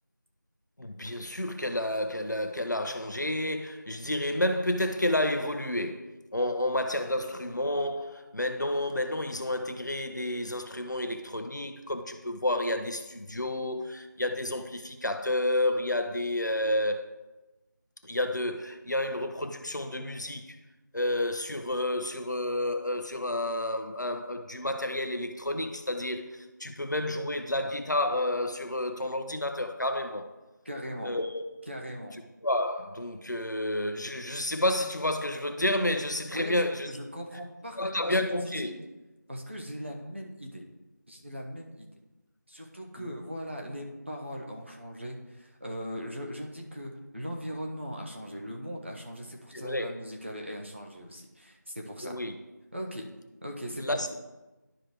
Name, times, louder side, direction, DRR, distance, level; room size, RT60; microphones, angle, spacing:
voice 1, 0.8-17.1 18.0-20.6 20.9-30.3 31.0-31.4 32.4-36.9 37.8-38.7 43.0-43.2 49.5-49.9 52.0-52.3 53.8-54.1, left 1 dB, 70° left, 0.7 m, -30 dB
voice 2, 30.6-31.1 31.7-32.2 36.3-38.8 39.3-40.6 41.1-41.9 42.5-52.1 52.7-53.1 53.4-54.1, equal, 40° right, 0.9 m, -39 dB
11.5 x 4.9 x 3.0 m
figure-of-eight pair, 180°, 10 cm